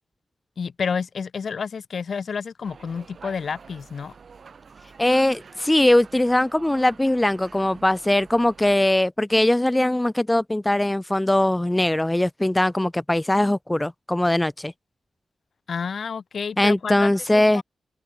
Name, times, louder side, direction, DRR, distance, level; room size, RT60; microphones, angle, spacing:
voice 1, 0.6-4.1 15.7-17.1 17.3-17.6, left 6 dB, 65° left, 0.9 m, -30 dB
sound 1, 2.6-8.8, right 5 dB, 55° right, 6.3 m, -47 dB
voice 2, 5.0-14.7 16.6-17.6, left 1 dB, 10° left, 0.4 m, -21 dB
wide cardioid pair, 95°, 0 cm